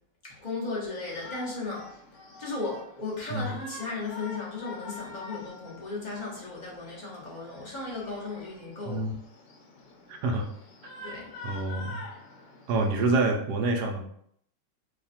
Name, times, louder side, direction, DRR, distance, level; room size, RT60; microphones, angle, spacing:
voice 1, 0.2-1.9 2.4-9.0 11.0-11.3, left 3 dB, 30° left, -5 dB, 1.0 m, -36 dB
Shout, 0.9-13.0, left 3 dB, 80° left, 1.4 m, -46 dB
voice 2, 8.8-9.2 10.1-10.5 11.0-11.1 11.4-12.0 12.7-14.1, right 2 dB, 75° right, 3 dB, 1.1 m, -27 dB
3.2 x 2.4 x 4.1 m, 0.68 s
omnidirectional pair, 1.9 m